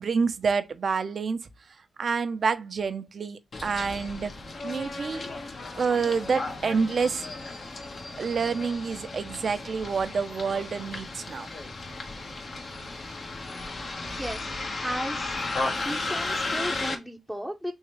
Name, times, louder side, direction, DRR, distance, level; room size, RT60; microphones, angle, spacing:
voice 1, 0.0-1.4 2.0-4.3 4.6-5.2 5.8-7.3 8.2-11.5, right 5 dB, 60° right, 0.7 m, -28 dB
Bus, 3.5-16.9, left 2 dB, 55° left, 1.2 m, -35 dB
voice 2, 14.0-14.5 14.8-15.4 15.7-17.7, equal, ahead, 0.8 m, -34 dB
3.6 x 3.2 x 3.1 m
cardioid pair, 55°, 0 cm